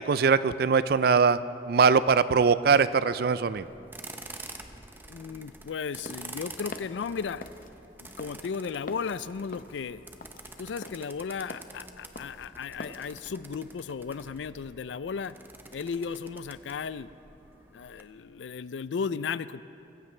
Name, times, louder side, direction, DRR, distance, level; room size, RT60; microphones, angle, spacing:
voice 1, 0.0-1.4 1.7-3.7, right 5 dB, 55° right, 15 dB, 0.4 m, -22 dB
sound 1, 3.5-18.0, right 2 dB, 10° right, 0.7 m, -48 dB
voice 2, 5.1-7.4 8.0-10.1 10.6-15.3 15.7-17.1 17.7-19.6, left 5 dB, 90° left, 16 dB, 0.4 m, -35 dB
sound 2, 6.0-13.1, left 2 dB, 50° left, 0.7 m, -45 dB
23.5 x 15.0 x 3.3 m, 2.8 s
head